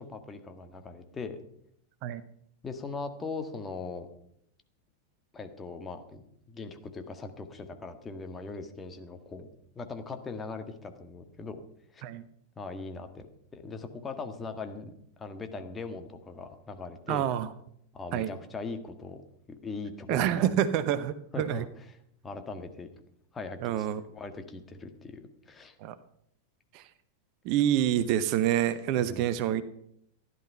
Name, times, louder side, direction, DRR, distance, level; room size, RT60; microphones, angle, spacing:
voice 1, 0.0-1.4 2.6-4.1 5.3-6.2 6.5-11.6 11.9-12.0 12.5-14.9 15.2-17.3 17.9-19.2 19.5-20.5 21.3-21.9 22.2-22.9 23.3-23.9 24.1-25.7 29.0-29.4, left 4 dB, 20° left, 6 dB, 1.7 m, -40 dB
voice 2, 17.1-17.5 18.1-18.3 20.1-21.6 23.6-24.0 25.8-25.9 26.7-26.8 27.4-29.6, right 11 dB, 45° right, 14 dB, 0.8 m, -27 dB
15.0 x 11.0 x 5.5 m, 0.71 s
figure-of-eight pair, 90°, 0 cm